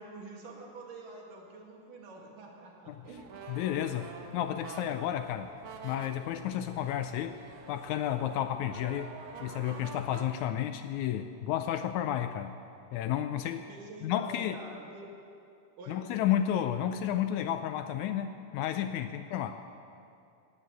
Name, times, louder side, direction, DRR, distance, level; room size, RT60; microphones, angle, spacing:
voice 1, 0.0-3.4 13.7-15.1 15.8-16.1 19.1-19.6, right 2 dB, 85° right, -1 dB, 3.6 m, -47 dB
sound 1, 3.0-10.3, right 4 dB, 60° right, 1.6 m, -47 dB
voice 2, 3.5-5.5 5.8-7.4 7.7-9.1 9.4-12.6 12.9-13.6 14.0-14.6 15.9-19.5, left 11 dB, 80° left, 9 dB, 1.8 m, -32 dB
14.0 x 9.9 x 8.2 m, 2.5 s
omnidirectional pair, 3.7 m